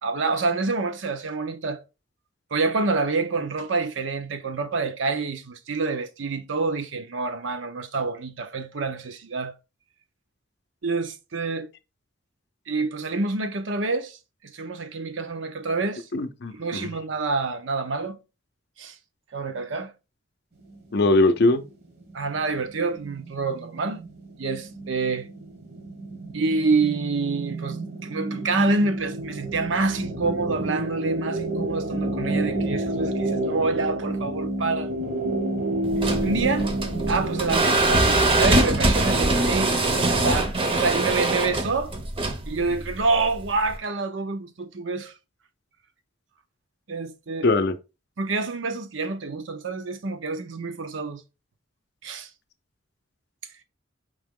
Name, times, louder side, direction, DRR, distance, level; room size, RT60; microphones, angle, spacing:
voice 1, 0.0-1.8 2.5-9.5 10.8-11.7 12.7-14.2 14.5-16.0 16.5-18.2 18.8-18.9 19.3-19.9 22.1-24.0 24.4-25.3 26.3-34.9 36.2-36.7 37.1-41.9 42.5-45.1 46.9-47.5 48.2-51.2 52.0-52.3, right 3 dB, 70° right, 0.7 m, -27 dB
voice 2, 16.1-16.9 20.9-21.6 47.4-47.7, left 2 dB, 60° left, 0.5 m, -21 dB
sound 1, 21.0-21.1 22.0-37.6, right 1 dB, 55° right, 1.1 m, -29 dB
sound 2, 35.9-43.7, right 2 dB, 30° right, 0.7 m, -23 dB
5.0 x 2.9 x 3.6 m
head